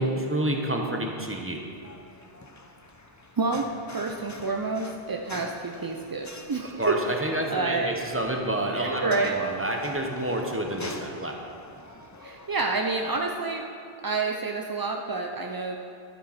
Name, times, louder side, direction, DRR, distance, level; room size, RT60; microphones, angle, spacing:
voice 1, 0.0-1.6 6.8-11.4, right 1 dB, 15° right, 1 dB, 0.9 m, -29 dB
sound 1, 1.7-13.2, left 2 dB, 25° left, 0.5 m, -45 dB
voice 2, 3.4-7.0 7.5-7.9 8.7-9.4 12.2-13.6 14.0-15.8, right 3 dB, 40° right, 2 dB, 0.3 m, -28 dB
11.5 x 9.8 x 4.2 m, 2.5 s
omnidirectional pair, 1.0 m